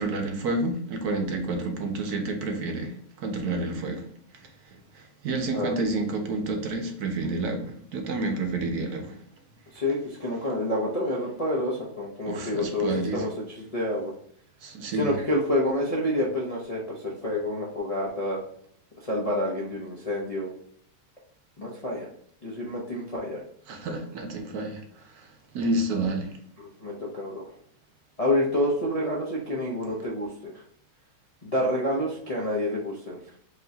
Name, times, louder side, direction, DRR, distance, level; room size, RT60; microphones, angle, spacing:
voice 1, 0.0-2.9 3.2-4.0 5.2-9.2 12.3-13.2 14.6-15.1 23.7-24.8 25.5-26.3, right 2 dB, 70° right, 3 dB, 1.1 m, -29 dB
voice 2, 9.7-14.1 14.9-18.4 19.0-20.5 21.6-22.1 22.4-23.4 26.6-27.4 28.2-30.5 31.4-33.2, left 1 dB, 40° left, -5 dB, 0.5 m, -28 dB
4.9 x 3.0 x 2.7 m, 0.65 s
omnidirectional pair, 1.8 m